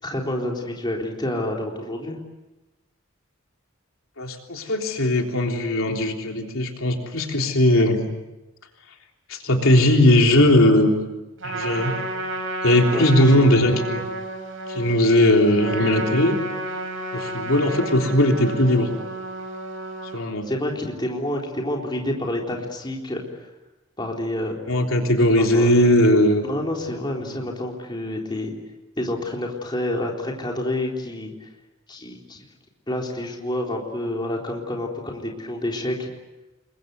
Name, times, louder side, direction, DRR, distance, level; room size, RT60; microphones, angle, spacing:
voice 1, 0.0-2.2 12.9-13.9 20.5-23.4 24.0-24.6 25.4-25.8 26.4-28.5 29.0-31.5 31.9-32.4 32.9-36.1, left 1 dB, 20° left, 0 dB, 3.9 m, -28 dB
voice 2, 4.2-8.0 9.3-10.9 11.4-11.9 12.6-14.0 14.7-16.4 17.1-18.9 20.1-20.5 24.7-26.4 27.2-27.4, left 1 dB, 70° left, 2 dB, 3.5 m, -18 dB
Trumpet, 11.4-20.2, right 2 dB, 65° right, 5.8 m, -31 dB
29.0 x 22.5 x 8.1 m, 1.0 s
head